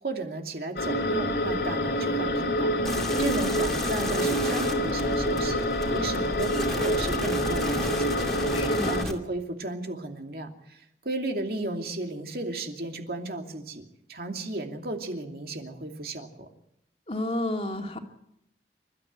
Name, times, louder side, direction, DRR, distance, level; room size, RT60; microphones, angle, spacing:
voice 1, 0.0-5.6 5.9-8.5 8.9-13.8 14.1-16.5, right 2 dB, 55° right, 3 dB, 2.7 m, -34 dB
sound 1, 0.8-9.0, equal, 65° left, 2.8 m, -27 dB
sound 2, 2.8-9.1, equal, 5° left, 2.4 m, -34 dB
voice 2, 3.1-3.5 8.5-9.0 17.1-18.0, left 1 dB, 35° left, 3 dB, 2.4 m, -30 dB
28.5 x 13.5 x 8.2 m, 0.80 s
head